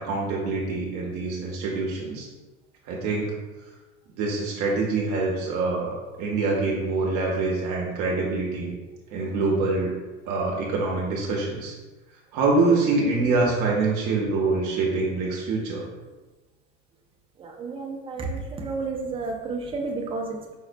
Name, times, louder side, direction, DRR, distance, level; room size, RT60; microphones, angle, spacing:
voice 1, 0.0-2.3 2.9-3.3 4.2-8.7 9.1-9.9 10.3-11.8 12.3-15.9, right 3 dB, 55° right, -2 dB, 0.7 m, -25 dB
voice 2, 17.4-20.6, right 3 dB, 15° right, 1 dB, 0.4 m, -31 dB
5.0 x 2.0 x 2.5 m, 1.2 s
supercardioid pair, 110°, 37 cm